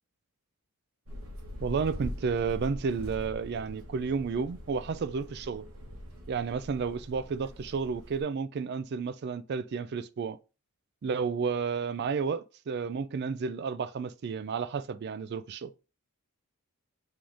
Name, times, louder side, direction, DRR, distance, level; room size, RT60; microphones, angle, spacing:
sound 1, 1.1-8.2, equal, 75° right, 1.2 m, -43 dB
voice 1, 1.6-5.6 6.3-10.4 11.0-15.8, right 5 dB, 50° right, 0.3 m, -32 dB
4.2 x 3.0 x 3.3 m
head